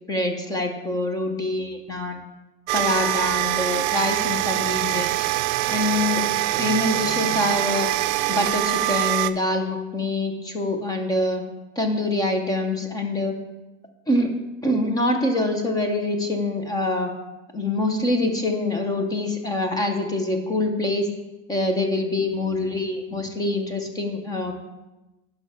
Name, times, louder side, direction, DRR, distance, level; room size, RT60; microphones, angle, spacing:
voice 1, 0.1-2.2 2.7-5.3 5.7-7.9 8.3-11.4 11.8-13.4 14.1-14.3 14.6-17.1 17.5-21.1 21.5-24.5, left 2 dB, 10° left, 5 dB, 0.6 m, -25 dB
sound 1, 2.7-9.3, right 16 dB, 60° right, 0.6 m, -24 dB
10.5 x 5.5 x 5.5 m, 1.0 s
supercardioid pair, 160°, 44 cm